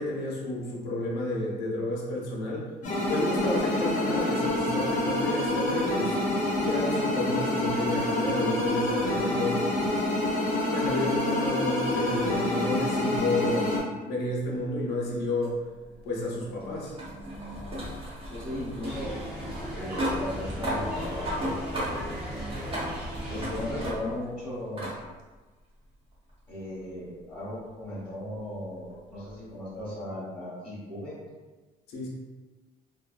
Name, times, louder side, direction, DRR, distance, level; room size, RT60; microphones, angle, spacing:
voice 1, 0.0-2.7 3.1-6.2 6.6-9.7 10.7-13.8 14.0-15.6 16.0-16.9 31.9-32.1, left 2 dB, 75° left, -3 dB, 0.6 m, -31 dB
sound 1, 2.8-13.8, left 1 dB, 45° left, 0.8 m, -27 dB
sound 2, 15.4-24.3 24.8-25.0 26.3-26.4 29.3-29.4, equal, 35° right, 0.9 m, -35 dB
voice 2, 18.3-19.1 19.7-22.0 23.3-24.9 26.5-31.1, left 1 dB, 15° left, -12 dB, 1.2 m, -37 dB
sound 3, 18.8-23.9, equal, 5° right, 0.8 m, -38 dB
2.5 x 2.1 x 2.4 m, 1.3 s
cardioid pair, 110°, 17 cm